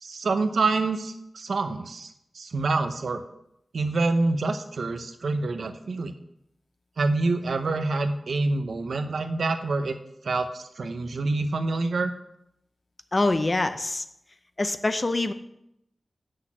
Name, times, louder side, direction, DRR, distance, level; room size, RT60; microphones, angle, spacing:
voice 1, 0.0-2.1 2.3-3.2 3.7-6.2 7.0-10.0 10.2-12.1, right 3 dB, 85° right, 8 dB, 0.8 m, -26 dB
voice 2, 13.1-14.0 14.6-15.3, left 2 dB, 35° left, 10 dB, 0.6 m, -24 dB
8.0 x 6.4 x 6.0 m, 0.79 s
wide cardioid pair, 105°, 0 cm